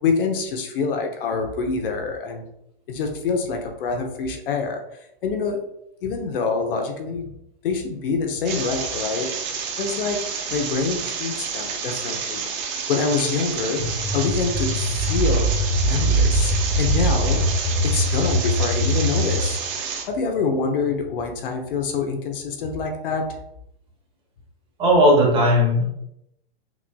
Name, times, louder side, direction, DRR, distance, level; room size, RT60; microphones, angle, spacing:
voice 1, 0.0-2.4 2.9-4.8 5.2-5.6 6.0-7.3 7.6-9.3 9.8-10.2 10.5-12.5 12.9-13.8 14.1-15.5 15.9-16.5 16.8-17.5 17.8-19.6 20.0-23.2, left 4 dB, 60° left, 3 dB, 0.8 m, -25 dB
sound 1, 8.5-20.0, right 6 dB, 45° right, 0.7 m, -30 dB
sound 2, 13.8-19.5, equal, ahead, 0.5 m, -22 dB
voice 2, 24.8-25.8, equal, 15° right, -3 dB, 1.1 m, -16 dB
6.1 x 2.5 x 2.3 m, 0.80 s
hypercardioid pair, 150°, 31 cm